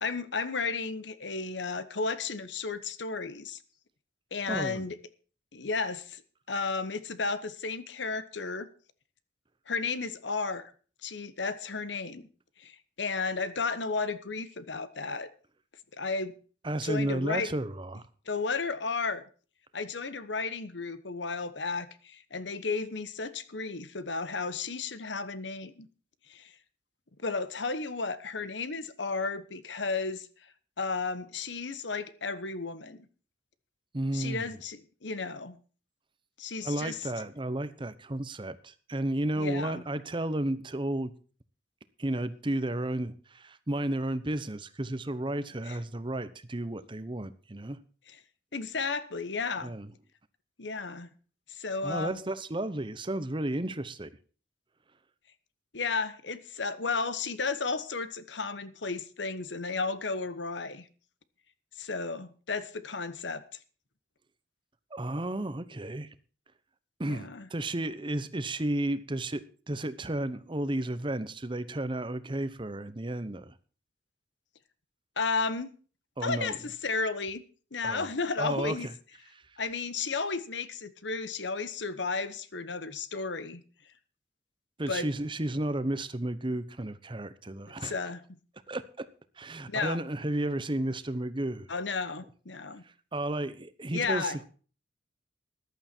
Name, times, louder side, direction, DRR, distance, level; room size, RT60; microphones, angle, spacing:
voice 1, 0.0-3.6 4.3-5.0 5.5-6.2 6.5-8.7 9.7-10.7 11.0-12.3 12.6-15.3 16.0-16.3 16.8-17.5 18.3-19.2 19.7-25.9 26.3-26.5 27.2-30.3 30.8-33.1 34.1-35.6 36.4-37.0 39.4-39.8 45.7-45.8 48.1-48.2 48.5-49.7 50.6-51.1 51.5-52.2 55.7-60.9 61.8-63.4 67.0-67.5 75.2-75.7 76.2-77.4 77.7-78.9 79.6-83.6 84.9-85.1 87.8-88.4 89.7-90.0 91.7-92.8 93.9-94.4, left 4 dB, 75° left, 1.1 m, -33 dB
voice 2, 4.5-4.8 16.6-18.1 33.9-34.6 36.6-41.1 42.0-47.8 49.6-49.9 51.8-54.1 64.9-66.1 67.0-73.5 76.2-76.6 77.8-78.1 78.4-78.9 84.8-87.9 88.7-89.1 89.4-91.7 92.8-94.4, right 1 dB, 25° right, 0.9 m, -33 dB
14.5 x 11.5 x 4.4 m
head